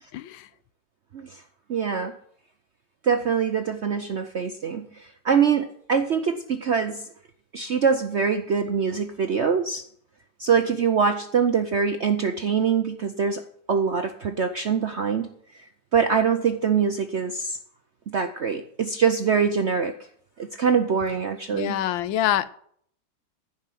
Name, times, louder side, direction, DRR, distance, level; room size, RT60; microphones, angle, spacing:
voice 1, 0.1-0.5 21.5-22.5, left 12 dB, 90° left, 16 dB, 1.4 m, -25 dB
voice 2, 1.7-2.1 3.0-7.1 7.5-9.8 10.4-13.4 13.7-15.3 15.9-17.6 18.1-19.9 20.4-21.8, right 6 dB, 65° right, 7 dB, 0.6 m, -24 dB
14.5 x 5.6 x 7.6 m, 0.64 s
omnidirectional pair, 2.0 m